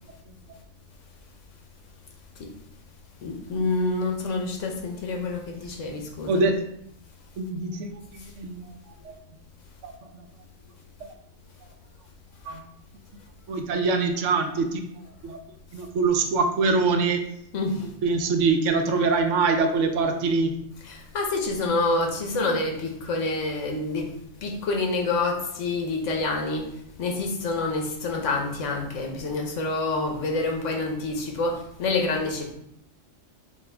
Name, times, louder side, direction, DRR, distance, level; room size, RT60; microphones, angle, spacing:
voice 1, 3.2-6.4 12.4-12.6 17.5-17.9 20.9-24.1 24.4-26.7 27.0-32.5, left 3 dB, 80° left, 2 dB, 1.2 m, -27 dB
voice 2, 6.3-6.6 7.4-8.8 9.0-9.2 9.8-10.2 12.4-12.6 13.5-14.8 15.2-15.4 15.7-17.2 18.0-20.5, right 4 dB, 75° right, 5 dB, 0.9 m, -24 dB
5.3 x 2.4 x 3.4 m, 0.75 s
omnidirectional pair, 1.3 m